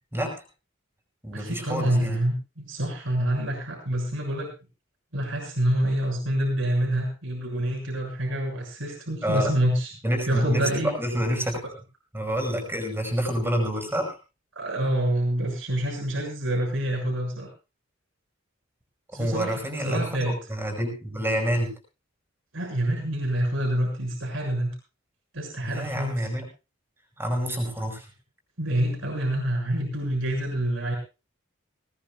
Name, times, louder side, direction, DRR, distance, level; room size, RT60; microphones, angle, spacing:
voice 1, 0.1-0.4 1.2-2.2 9.2-9.5 10.0-11.6 12.1-14.2 19.1-21.7 25.6-26.5 27.2-28.1, equal, 10° right, 3 dB, 5.3 m, -28 dB
voice 2, 1.3-4.5 5.1-9.9 10.3-10.9 14.5-17.5 19.1-20.4 22.5-24.7 25.3-26.3 28.6-31.0, right 1 dB, 75° right, 0 dB, 6.5 m, -27 dB
20.5 x 19.0 x 2.4 m, 0.30 s
head